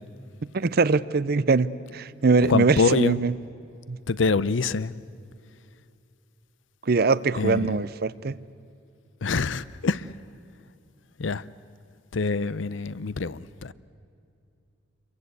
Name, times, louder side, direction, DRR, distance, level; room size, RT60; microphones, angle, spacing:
voice 1, 0.5-3.3 3.9-4.0 6.9-8.3, right 4 dB, 55° right, 0.6 m, -22 dB
voice 2, 2.4-3.2 4.1-4.9 7.3-7.8 9.2-10.1 11.2-11.4 12.1-13.7, left 4 dB, 80° left, 0.6 m, -25 dB
29.0 x 23.0 x 8.2 m
head